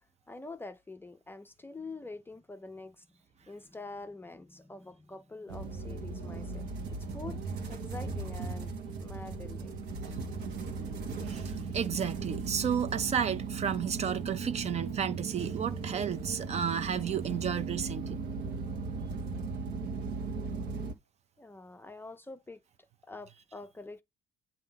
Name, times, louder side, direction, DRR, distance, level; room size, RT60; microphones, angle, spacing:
voice 1, 0.3-3.2 3.5-8.7 9.0-9.8 19.0-19.1 21.4-22.6 23.0-24.0, left 3 dB, 10° left, 0.5 m, -46 dB
sound 1, 5.5-20.9, right 4 dB, 85° right, 1.1 m, -37 dB
voice 2, 11.3-18.2, right 7 dB, 40° right, 0.6 m, -32 dB
7.7 x 2.7 x 5.6 m
cardioid pair, 110°, 17 cm